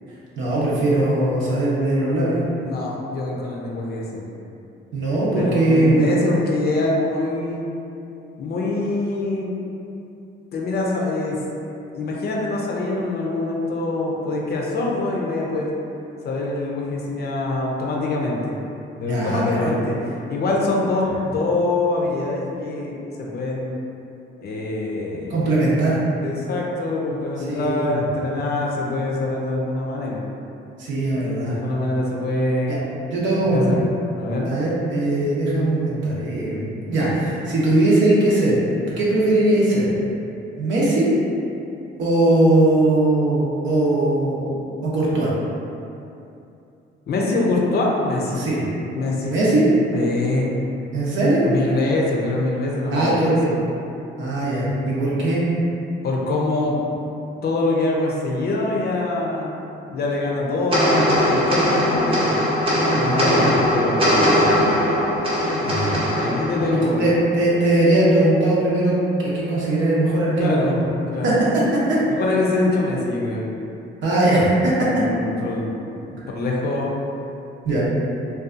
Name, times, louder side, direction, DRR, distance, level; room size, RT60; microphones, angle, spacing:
voice 1, 0.4-2.4 4.9-6.1 19.0-19.7 25.3-26.0 27.5-28.0 30.8-31.5 32.7-32.8 33.1-33.7 34.4-38.6 39.0-39.8 40.6-41.1 42.0-45.3 48.4-48.6 49.2-49.7 50.9-51.5 52.9-53.3 54.2-55.4 62.9-63.5 65.6-66.0 66.7-69.0 69.2-70.7 71.2-72.0 74.0-74.9 77.6-77.8, right 1 dB, 70° right, -7 dB, 0.7 m, -20 dB
voice 2, 2.6-4.3 5.3-7.6 8.4-9.5 10.5-11.4 11.9-15.7 16.2-18.5 19.0-23.8 24.4-25.6 26.2-30.2 31.5-32.8 33.4-34.5 47.1-48.4 48.9-49.4 49.9-50.5 51.4-53.6 56.0-57.0 57.4-59.6 59.9-62.3 63.0-63.4 63.7-64.5 66.1-67.2 70.4-70.8 71.1-71.3 72.1-73.4 74.9-76.9 77.7-77.8, left 2 dB, 55° left, -2 dB, 0.5 m, -24 dB
sound 1, 60.7-67.3, equal, 25° right, 0.7 m, -20 dB
2.6 x 2.3 x 2.4 m, 2.7 s
cardioid pair, 90°, 20 cm